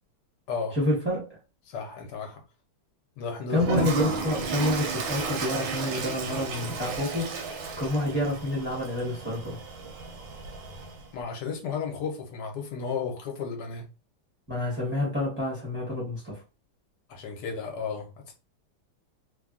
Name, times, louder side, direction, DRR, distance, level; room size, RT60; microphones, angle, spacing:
voice 1, 0.7-1.4 3.5-7.3 7.8-9.6 14.5-16.4, left 1 dB, 15° right, 0.4 m, -28 dB
voice 2, 1.7-2.4 3.2-3.8 11.1-13.8 17.1-18.3, left 5 dB, 65° left, 1.2 m, -33 dB
Toilet flush, 3.6-11.1, right 4 dB, 85° right, 1.4 m, -33 dB
3.3 x 2.2 x 2.4 m
omnidirectional pair, 2.2 m